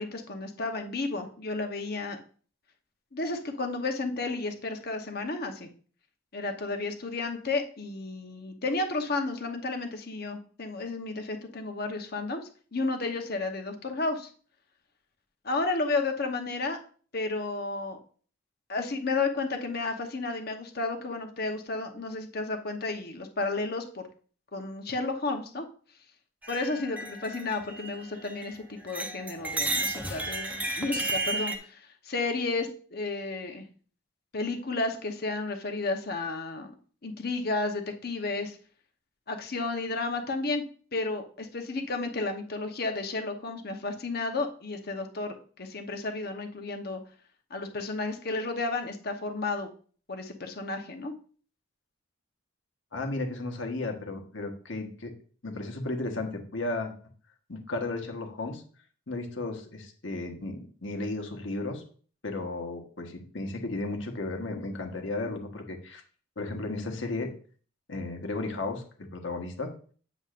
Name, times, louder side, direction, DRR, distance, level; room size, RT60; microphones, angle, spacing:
voice 1, 0.0-2.2 3.1-5.7 6.3-14.3 15.4-16.8 17.1-18.0 18.7-24.1 24.5-25.7 26.5-33.7 34.3-36.7 37.0-38.6 39.3-40.6 40.9-47.0 47.5-49.7 50.1-51.1, left 3 dB, 50° left, 5 dB, 1.0 m, -32 dB
sound 1, 26.4-28.6 28.9-31.6, right 2 dB, 10° right, 0.7 m, -33 dB
voice 2, 52.9-55.1 55.4-56.9 57.5-58.6 59.1-61.8 62.2-66.0 66.4-67.3 67.9-69.7, left 2 dB, 70° left, 3 dB, 1.3 m, -34 dB
8.4 x 7.1 x 2.5 m, 0.43 s
head